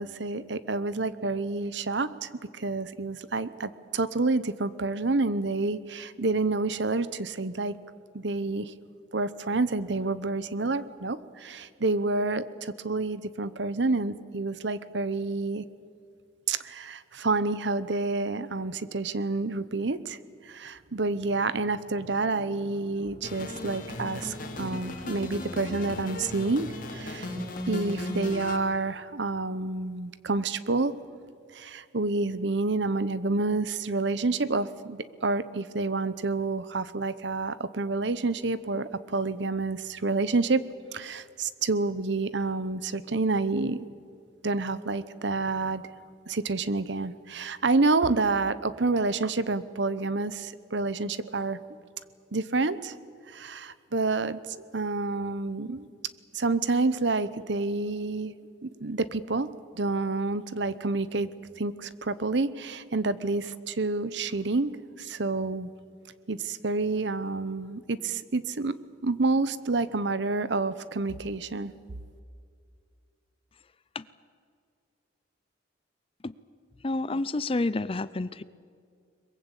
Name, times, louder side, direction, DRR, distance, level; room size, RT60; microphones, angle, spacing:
voice 1, 0.0-7.8 8.1-8.7 9.1-15.6 16.5-20.2 20.5-27.3 27.7-30.9 31.5-40.6 40.9-43.9 44.4-45.8 46.3-51.6 52.3-52.9 53.3-54.4 54.7-55.9 56.3-58.3 58.6-59.5 59.7-61.3 61.6-64.7 65.0-65.7 66.3-68.7 69.0-71.7, right 3 dB, 65° right, 15 dB, 0.9 m, -28 dB
sound 1, 23.2-28.6, left 1 dB, 45° left, 2.8 m, -36 dB
voice 2, 76.8-78.4, left 2 dB, 30° left, 17 dB, 0.5 m, -29 dB
22.5 x 22.0 x 8.3 m, 2.3 s
head